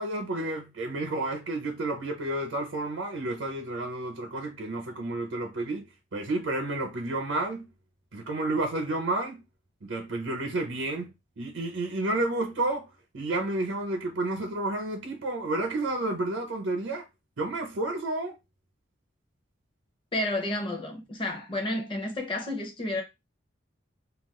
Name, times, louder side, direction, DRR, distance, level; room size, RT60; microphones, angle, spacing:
voice 1, 0.0-5.8 6.1-7.7 8.1-9.4 9.8-11.1 11.4-12.9 13.1-17.0 17.4-18.4, right 2 dB, 80° right, 0.7 m, -30 dB
voice 2, 20.1-23.0, left 1 dB, 25° left, 0.6 m, -31 dB
2.4 x 2.2 x 3.6 m
head